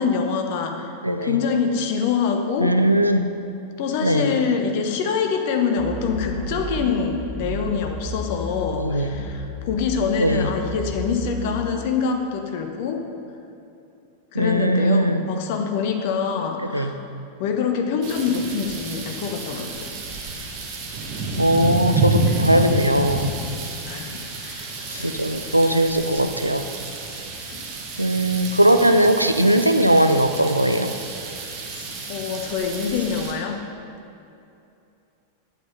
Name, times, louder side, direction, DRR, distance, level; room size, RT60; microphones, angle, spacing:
voice 1, 0.0-0.9 1.2-2.7 3.8-13.0 14.3-17.0 17.4-19.9 23.8-25.1 27.5-27.6 31.7-31.8 32.1-33.6, left 6 dB, 50° left, 4 dB, 1.0 m, -25 dB
voice 2, 1.0-1.4 2.6-3.3 4.0-4.3 8.8-9.2 10.2-10.5 14.3-15.3 16.7-16.9 21.4-23.3 25.0-26.7 28.0-30.9, right 1 dB, 85° right, 8 dB, 0.5 m, -19 dB
sound 1, 5.8-8.9 9.1-11.7, equal, 20° left, 1.6 m, -32 dB
sound 2, 18.0-33.3, right 2 dB, 40° right, 1.6 m, -29 dB
8.9 x 7.9 x 5.4 m, 2.7 s
figure-of-eight pair, 90°, 0 cm